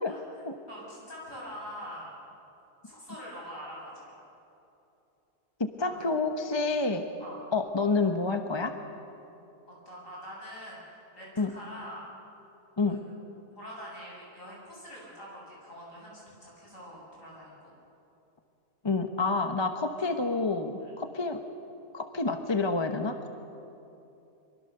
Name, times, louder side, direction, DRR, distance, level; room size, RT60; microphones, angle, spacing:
voice 1, 0.7-2.2 2.8-4.2 5.8-6.1 7.2-7.4 9.8-12.1 12.8-13.0 13.6-17.7 20.8-20.9, equal, 55° left, -4 dB, 8.3 m, -44 dB
voice 2, 5.6-7.0 7.5-8.7 11.4-11.5 12.8-13.0 18.8-21.4 21.9-23.3, left 3 dB, 20° left, 6 dB, 0.9 m, -28 dB
24.5 x 23.5 x 6.8 m, 2.9 s
omnidirectional pair, 1.6 m